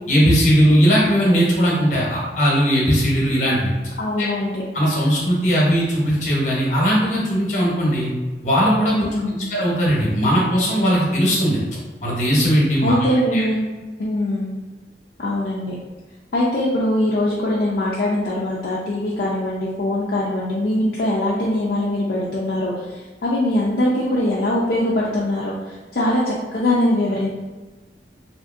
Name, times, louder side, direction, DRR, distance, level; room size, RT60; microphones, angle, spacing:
voice 1, 0.1-3.7 4.2-4.3 4.7-8.1 8.4-8.9 9.5-11.6 12.0-13.4, equal, 45° left, -4 dB, 0.9 m, -18 dB
voice 2, 4.0-4.6 8.9-9.5 12.8-13.7 14.0-14.5 15.2-15.7 16.3-27.3, left 1 dB, 60° left, -6 dB, 0.4 m, -22 dB
2.8 x 2.5 x 2.4 m, 1.3 s
head